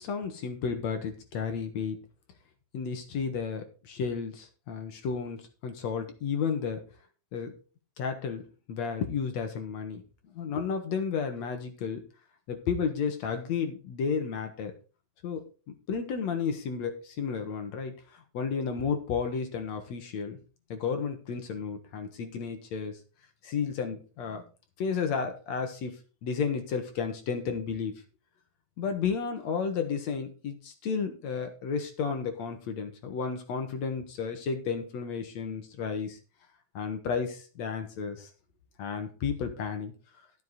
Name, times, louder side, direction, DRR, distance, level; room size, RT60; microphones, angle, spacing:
voice 1, 0.0-2.0 2.7-6.8 7.3-7.6 8.0-10.0 10.4-12.0 12.5-14.7 15.2-15.4 15.9-17.9 18.3-20.4 20.7-23.0 23.4-24.4 24.8-27.9 28.8-36.2 36.7-38.3 38.8-39.9, left 6 dB, 60° left, 6 dB, 2.5 m, -32 dB
12.5 x 7.4 x 4.1 m, 0.34 s
omnidirectional pair, 3.8 m